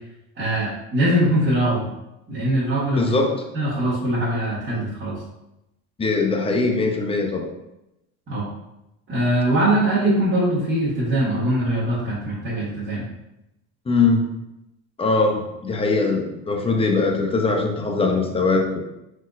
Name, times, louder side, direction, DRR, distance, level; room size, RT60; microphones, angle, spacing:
voice 1, 0.4-1.9 2.3-3.1 3.5-5.2 8.3-8.5 9.1-13.1, right 1 dB, 30° right, -9 dB, 1.5 m, -22 dB
voice 2, 3.0-3.4 6.0-7.5 13.9-14.3 15.0-18.8, left 3 dB, 15° left, 3 dB, 0.6 m, -21 dB
4.1 x 4.0 x 2.5 m, 0.90 s
cardioid pair, 115°, 38 cm